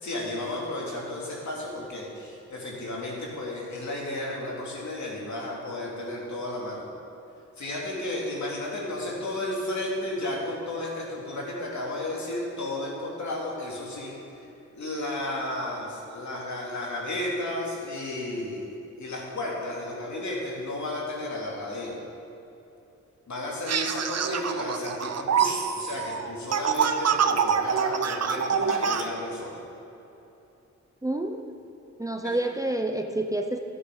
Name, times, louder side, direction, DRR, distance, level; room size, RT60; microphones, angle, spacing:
voice 1, 0.0-6.9 7.6-14.4 14.7-22.0 23.3-29.6 32.2-32.4, left 1 dB, 70° left, -3 dB, 2.9 m, -33 dB
sound 1, 23.7-29.0, right 7 dB, 55° right, 0.7 m, -26 dB
voice 2, 31.0-31.5 32.0-33.6, right 1 dB, 10° right, 4 dB, 0.6 m, -28 dB
13.5 x 8.2 x 5.4 m, 2.9 s
wide cardioid pair, 115°, 30 cm